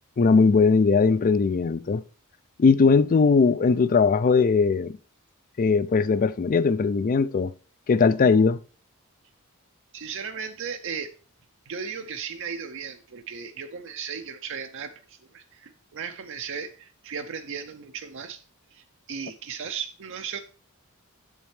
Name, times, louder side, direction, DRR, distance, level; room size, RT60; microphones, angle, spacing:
voice 1, 0.2-2.0 2.6-5.0 5.6-7.5 7.9-8.6, left 4 dB, 40° left, 0.4 m, -19 dB
voice 2, 9.9-11.1 11.7-18.4 18.7-20.4, right 6 dB, 60° right, 0.6 m, -36 dB
8.2 x 7.2 x 3.2 m
head